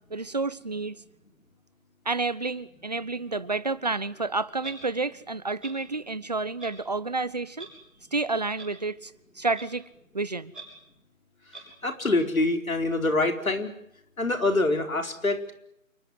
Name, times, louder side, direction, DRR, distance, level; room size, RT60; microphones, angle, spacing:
voice 1, 0.1-1.0 2.0-7.7 8.1-9.1 9.4-9.8 10.1-10.5, right 3 dB, 30° right, 16 dB, 0.9 m, -30 dB
Clock, 4.6-4.8 5.6-5.7 6.6-6.7 7.6-7.7 8.6-8.7 9.5-9.6 10.5-10.6 11.5-11.6, right 3 dB, ahead, 7.7 m, -41 dB
voice 2, 11.8-13.7 14.2-15.5, left 2 dB, 85° left, 5 dB, 4.4 m, -25 dB
28.0 x 23.5 x 7.8 m, 0.78 s
figure-of-eight pair, 170°, 40 cm